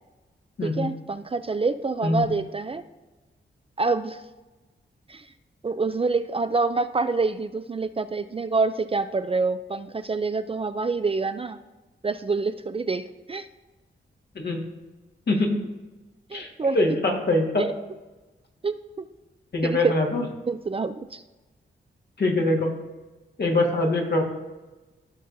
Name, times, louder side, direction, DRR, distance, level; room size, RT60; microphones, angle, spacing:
voice 1, 0.6-2.8 3.8-4.2 5.1-5.2 5.6-11.6 12.0-13.5 16.3-16.8 17.6-17.7 18.6-19.1 19.6-19.9 20.5-21.2, right 3 dB, 30° right, 10 dB, 0.4 m, -26 dB
voice 2, 15.3-15.6 16.3-16.5 16.7-17.6 19.5-20.2 22.2-22.7 23.4-24.2, left 2 dB, 60° left, 1 dB, 1.5 m, -23 dB
15.0 x 5.4 x 2.6 m, 1.2 s
wide cardioid pair, 85°, 20 cm